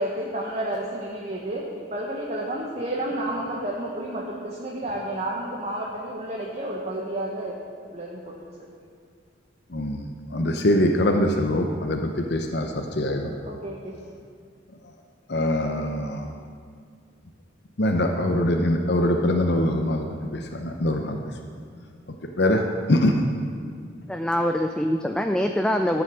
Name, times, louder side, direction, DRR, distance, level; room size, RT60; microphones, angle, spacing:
voice 1, 0.0-1.7 1.9-7.5 7.9-8.8 13.4-14.0, right 1 dB, 35° right, -3 dB, 1.2 m, -31 dB
voice 2, 9.7-13.3 15.3-16.3 17.8-21.2 22.4-23.2, left 1 dB, 60° left, 3 dB, 0.8 m, -23 dB
voice 3, 24.1-26.0, equal, 5° left, 5 dB, 0.3 m, -24 dB
13.5 x 7.2 x 6.3 m, 2.1 s
head